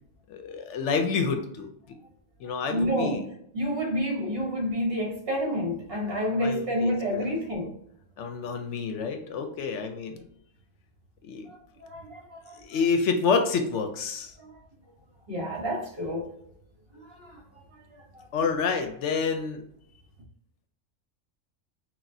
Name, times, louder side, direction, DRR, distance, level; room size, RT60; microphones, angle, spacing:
voice 1, 0.3-1.7 2.4-3.2 6.4-7.3 8.2-10.2 11.2-11.5 12.6-14.3 18.3-19.6, left 5 dB, 70° left, 0.8 m, -28 dB
voice 2, 2.7-3.2 3.5-7.7 11.5-12.6 14.4-14.5 15.3-16.2 17.0-17.4 18.1-18.2, equal, 50° right, 1.3 m, -29 dB
5.8 x 2.4 x 2.6 m
omnidirectional pair, 1.3 m